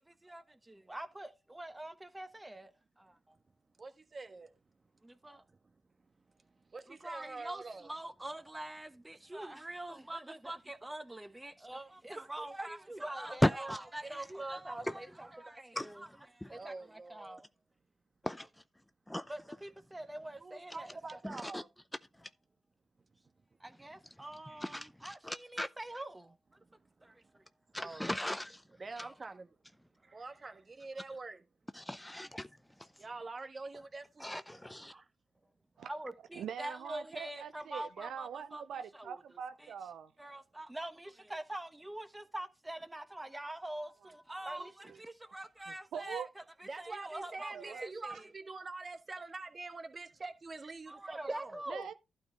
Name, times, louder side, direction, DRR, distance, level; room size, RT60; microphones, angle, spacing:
voice 1, 0.0-2.7 3.0-3.4 5.0-5.4 7.0-17.5 19.3-20.9 23.6-26.4 27.0-27.4 35.8-39.2 39.6-39.7 40.2-48.3 50.9-51.9, right 1 dB, 15° right, 1.2 m, -44 dB
voice 2, 3.8-4.8 5.2-7.9 16.5-17.4 20.4-21.7 23.0-23.3 24.5-24.6 26.6-27.4 27.7-28.1 28.8-29.6 30.0-31.5 33.0-34.6 34.9-35.1 46.6-51.6, right 3 dB, 40° right, 1.3 m, -46 dB
voice 3, 13.4-13.8 14.9-15.0 15.8-15.9 16.4-16.5 18.2-18.5 19.1-19.3 21.2-21.6 22.2-22.3 24.6-25.7 27.7-28.6 29.0-29.1 31.7-32.5 32.8-32.9 34.2-34.9, left 1 dB, 10° left, 0.6 m, -35 dB
voice 4, 36.3-40.1 44.4-45.0 45.7-46.3 47.5-47.8 51.7-51.9, right 7 dB, 70° right, 0.5 m, -44 dB
12.0 x 4.3 x 4.6 m
hypercardioid pair, 45°, 0 cm